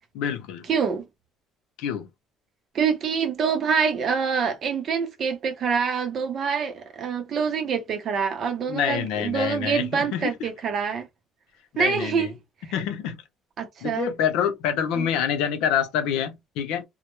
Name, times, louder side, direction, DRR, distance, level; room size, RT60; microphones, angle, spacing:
voice 1, 0.1-0.6 1.8-2.1 8.7-10.5 11.8-12.3 12.7-13.2 13.8-16.8, left 8 dB, 90° left, 0.6 m, -26 dB
voice 2, 0.7-1.0 2.7-11.1 11.8-12.3 13.6-14.1 14.9-15.1, right 6 dB, 35° right, 0.6 m, -25 dB
2.2 x 2.0 x 2.9 m
cardioid pair, 175°, 0 cm